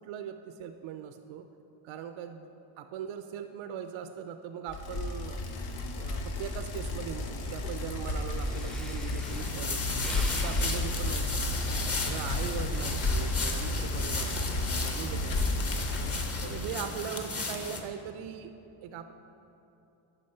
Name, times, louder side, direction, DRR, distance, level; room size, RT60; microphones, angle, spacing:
voice 1, 0.0-1.5 1.8-2.5 2.8-5.4 5.9-11.6 12.0-15.8 16.4-18.5 18.8-19.1, right 8 dB, 70° right, 8 dB, 0.6 m, -40 dB
Bicycle, 4.7-16.4, left 2 dB, 80° left, 1.0 m, -32 dB
Breathing, 8.1-8.2 8.4-12.7 13.2-13.5, equal, ahead, 0.5 m, -45 dB
sound 1, 9.2-17.8, left 3 dB, 30° left, 1.0 m, -35 dB
9.8 x 5.1 x 5.5 m, 2.9 s
cardioid pair, 90°, 49 cm